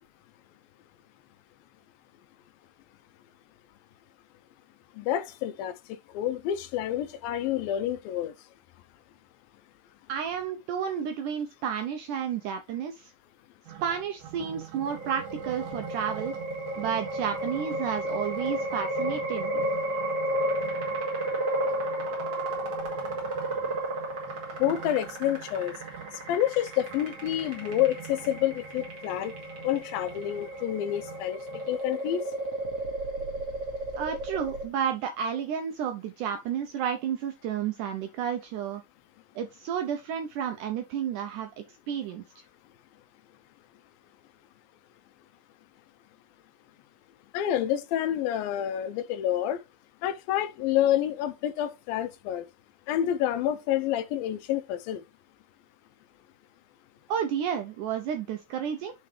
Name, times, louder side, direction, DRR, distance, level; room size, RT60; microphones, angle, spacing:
voice 1, 5.0-5.7 6.1-8.3 24.6-25.8 26.3-29.4 29.6-31.4 31.7-32.2 47.3-49.6 50.0-52.5 52.9-55.0, left 11 dB, 80° left, 2.3 m, -28 dB
voice 2, 10.1-13.1 13.8-16.3 16.8-19.6 34.0-38.8 39.4-42.4 57.1-58.9, right 8 dB, 80° right, 1.8 m, -31 dB
sound 1, 13.7-31.8, right 10 dB, 65° right, 2.3 m, -45 dB
sound 2, 14.9-34.7, right 1 dB, 45° right, 3.1 m, -33 dB
11.0 x 3.9 x 3.2 m
omnidirectional pair, 4.3 m